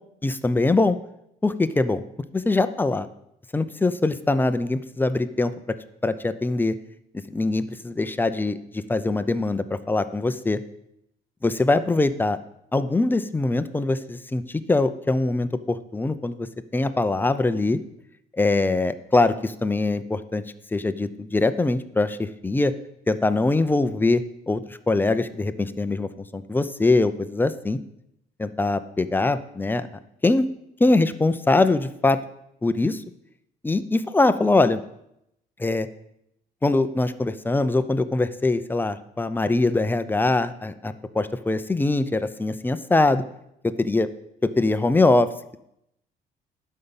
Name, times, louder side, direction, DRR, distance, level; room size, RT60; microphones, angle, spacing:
voice 1, 0.2-1.0 1.4-2.0 2.3-3.1 3.5-5.5 6.0-6.7 7.3-10.6 11.4-12.4 12.7-16.5 16.7-17.8 18.3-20.4 20.7-22.7 23.1-24.6 24.9-27.8 28.4-29.9 30.2-30.5 30.8-32.2 32.6-33.0 33.6-34.8 35.6-35.9 36.6-43.2 43.8-44.1 44.4-45.3, left 2 dB, 10° left, 11 dB, 0.6 m, -22 dB
11.0 x 5.5 x 7.1 m, 0.80 s
cardioid pair, 110°, 17 cm